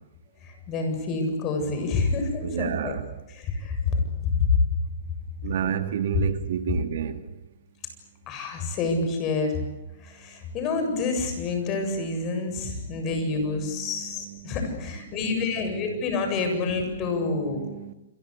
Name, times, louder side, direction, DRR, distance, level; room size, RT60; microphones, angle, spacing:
voice 1, 0.4-2.9 3.4-3.9 4.2-4.5 5.4-5.6 8.3-9.6 10.0-17.6, left 4 dB, 30° left, 6 dB, 7.6 m, -28 dB
voice 2, 2.4-3.1 5.4-7.3 12.3-14.6 15.1-16.4 16.7-17.9, right 9 dB, 65° right, 8 dB, 2.3 m, -33 dB
28.5 x 23.0 x 8.3 m, 0.91 s
hypercardioid pair, 145°, 0 cm